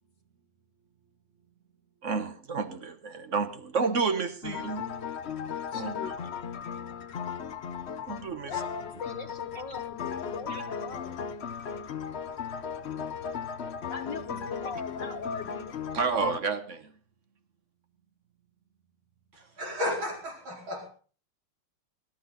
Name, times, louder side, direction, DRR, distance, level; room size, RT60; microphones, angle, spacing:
voice 1, 2.0-4.9 5.7-6.1 8.1-8.6 10.5-10.6 15.9-16.9 19.4-19.5, right 4 dB, 45° right, 1.1 m, -30 dB
sound 1, 4.4-16.4, left 7 dB, 80° left, 0.5 m, -36 dB
voice 2, 5.7-6.1 8.5-11.3 13.8-15.8, left 5 dB, 60° left, 1.8 m, -39 dB
voice 3, 19.3-20.9, left 1 dB, 65° right, 5.5 m, -33 dB
20.0 x 12.5 x 4.1 m
omnidirectional pair, 2.4 m